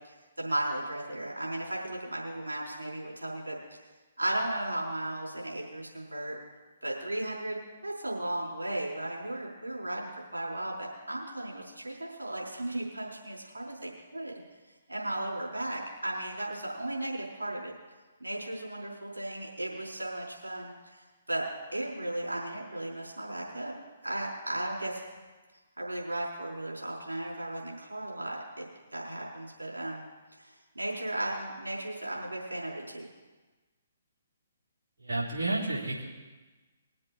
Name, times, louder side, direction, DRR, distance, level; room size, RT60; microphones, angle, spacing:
voice 1, 0.4-3.6 4.2-6.4 6.8-14.4 14.9-17.7 18.2-21.0 21.3-23.7 24.0-25.0 25.8-28.6 28.9-30.0 30.4-33.1, right 1 dB, 85° right, -4 dB, 4.7 m, -35 dB
voice 2, 35.0-36.1, right 2 dB, 65° right, -8 dB, 4.1 m, -31 dB
22.0 x 7.6 x 4.5 m, 1.2 s
figure-of-eight pair, 130°, 0 cm